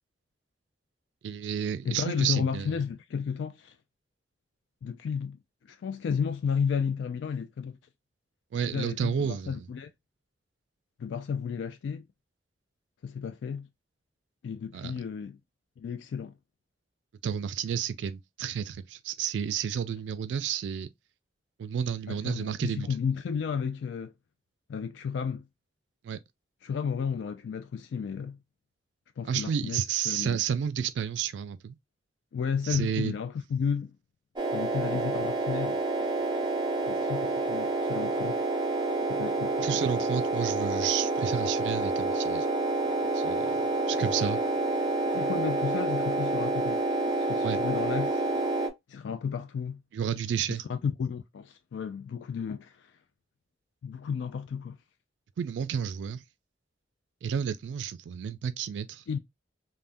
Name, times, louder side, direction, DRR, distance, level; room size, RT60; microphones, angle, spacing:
voice 1, 1.2-2.8 8.5-9.7 14.7-15.0 17.2-20.9 21.6-22.9 26.0-26.2 29.2-31.8 32.6-33.1 39.6-42.5 43.1-43.5 43.9-44.4 47.4-47.6 49.9-50.6 55.4-56.2 57.2-59.0, right 8 dB, 85° right, 0.3 m, -31 dB
voice 2, 1.8-3.7 4.8-5.4 5.7-7.8 8.6-9.9 11.0-12.0 13.0-13.7 14.4-15.4 15.8-16.3 22.1-24.1 24.7-25.4 26.6-28.4 29.2-30.4 32.3-33.9 34.5-35.8 36.9-38.4 39.1-39.8 45.1-46.8 47.2-48.2 48.9-49.8 50.7-52.9 53.8-54.8 59.1-59.2, left 6 dB, 90° left, 0.3 m, -32 dB
sound 1, 34.4-48.7, right 2 dB, 25° right, 0.6 m, -28 dB
3.4 x 2.1 x 2.5 m
head